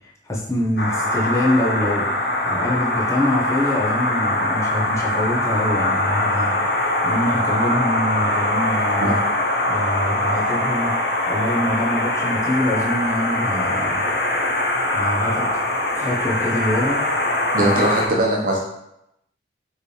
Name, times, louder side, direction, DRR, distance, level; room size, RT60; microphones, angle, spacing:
voice 1, 0.2-2.1 2.5-6.5 7.0-9.0 9.7-10.9 11.3-14.0 14.9-15.4 15.9-17.0, left 1 dB, 15° left, -4 dB, 0.6 m, -24 dB
sound 1, 0.8-18.1, left 1 dB, 60° left, 0.6 m, -22 dB
voice 2, 17.5-18.6, right 1 dB, 50° right, -1 dB, 0.9 m, -20 dB
4.6 x 3.3 x 3.1 m, 0.82 s
head